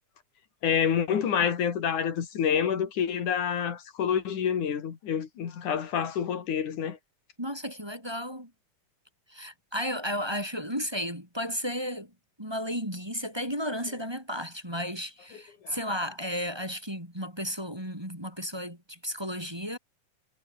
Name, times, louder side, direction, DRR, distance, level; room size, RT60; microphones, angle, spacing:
voice 1, 0.6-7.0 15.6-15.8, left 8 dB, 80° left, 3.9 m, -28 dB
voice 2, 7.4-8.5 9.3-12.1 12.4-19.8, equal, 10° right, 5.2 m, -33 dB
omnidirectional pair, 3.4 m